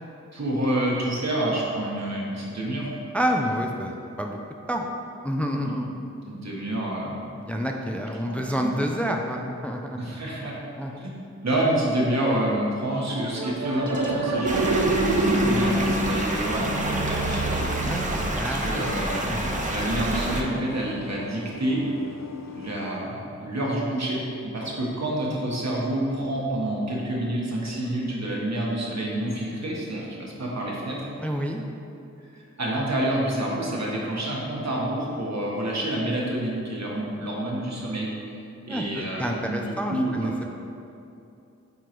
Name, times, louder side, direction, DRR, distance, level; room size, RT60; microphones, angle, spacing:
voice 1, 0.3-2.9 5.6-5.8 6.3-7.2 8.3-8.7 10.0-10.5 10.9-17.7 17.9-18.0 18.4-21.8 22.5-31.1 32.6-38.3 38.6-40.3, right 1 dB, 65° right, -4 dB, 1.3 m, -28 dB
voice 2, 3.1-4.4 4.7-4.8 5.2-5.9 7.4-10.0 10.8-11.1 17.8-18.7 19.3-19.5 31.2-31.6 38.7-40.6, equal, 5° left, 2 dB, 0.4 m, -28 dB
sound 1, 13.1-18.5, right 2 dB, 90° right, 0.6 m, -26 dB
sound 2, 14.4-20.4, right 1 dB, 25° right, 0.7 m, -28 dB
sound 3, 17.1-22.9, left 5 dB, 65° left, 0.6 m, -43 dB
9.2 x 3.8 x 3.1 m, 2.7 s
wide cardioid pair, 55°, 29 cm